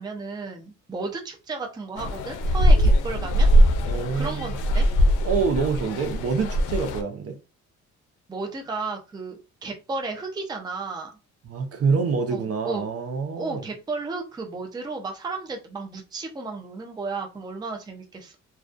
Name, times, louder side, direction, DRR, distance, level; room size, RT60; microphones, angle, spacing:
voice 1, 0.0-3.5 4.1-4.9 8.3-11.1 12.3-12.8 13.3-18.4, right 3 dB, 15° right, 0.5 m, -33 dB
sound 1, 2.0-7.0, equal, 90° left, 0.5 m, -21 dB
voice 2, 3.9-4.5 5.2-7.3 11.5-13.6, right 5 dB, 50° right, 0.7 m, -26 dB
2.3 x 2.2 x 2.4 m
cardioid pair, 90°, 30 cm